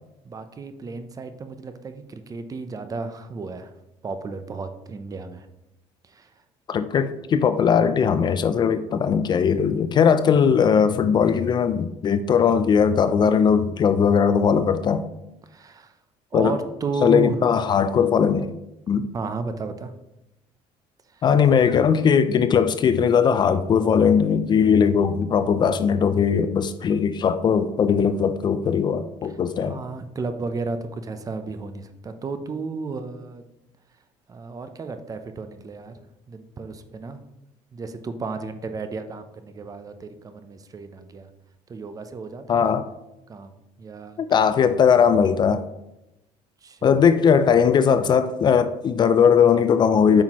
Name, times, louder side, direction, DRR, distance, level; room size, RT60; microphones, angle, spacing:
voice 1, 0.2-3.7 4.0-5.5 6.0-6.3 15.4-16.0 16.3-17.5 19.1-19.9 21.1-21.2 29.2-29.4 29.6-33.4 34.3-35.9 36.3-37.2 37.7-41.3 41.7-42.7 43.3-44.2 46.6-47.0, right 4 dB, 30° right, 9 dB, 0.6 m, -33 dB
voice 2, 6.7-15.0 16.3-16.6 17.0-18.6 18.9-19.1 21.2-29.8 42.5-42.9 44.3-45.7 46.8-50.2, left 7 dB, 35° left, 11 dB, 0.4 m, -19 dB
8.7 x 5.8 x 3.0 m, 0.92 s
cardioid pair, 120°, 13 cm